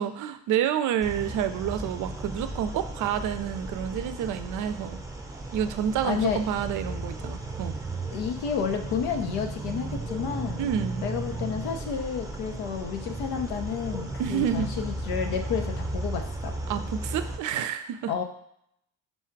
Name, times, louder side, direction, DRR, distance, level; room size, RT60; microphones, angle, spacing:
voice 1, 0.0-5.0 5.5-7.8 10.6-11.0 14.2-14.7 16.7-18.1, right 9 dB, 60° right, 10 dB, 0.5 m, -29 dB
sound 1, 1.0-17.4, right 2 dB, 10° right, 0.8 m, -35 dB
voice 2, 6.0-6.4 8.1-10.7 11.0-16.6 18.1-18.2, left 7 dB, 85° left, 5 dB, 0.7 m, -31 dB
4.2 x 2.4 x 4.5 m, 0.71 s
supercardioid pair, 85°, 36 cm